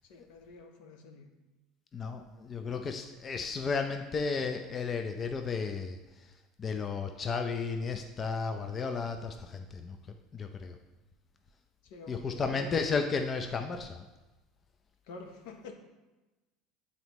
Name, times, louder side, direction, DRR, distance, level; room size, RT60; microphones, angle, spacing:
voice 1, 0.1-1.3 11.8-12.7 15.1-15.7, left 3 dB, 75° left, 4 dB, 0.9 m, -48 dB
voice 2, 1.9-6.3 6.6-10.8 12.1-14.0, left 5 dB, 35° left, 6 dB, 0.5 m, -34 dB
7.6 x 4.1 x 3.0 m, 1.1 s
supercardioid pair, 95°, 0 cm